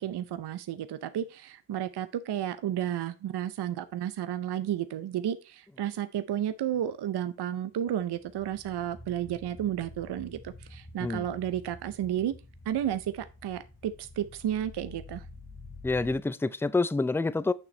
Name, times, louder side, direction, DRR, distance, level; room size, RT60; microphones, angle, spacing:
voice 1, 0.0-12.3 12.7-15.3, right 11 dB, 60° right, 0.6 m, -32 dB
sound 1, 8.0-16.2, left 2 dB, 20° left, 1.4 m, -49 dB
voice 2, 15.8-17.5, left 3 dB, 5° left, 0.4 m, -27 dB
6.7 x 5.9 x 3.2 m
cardioid pair, 60°, 44 cm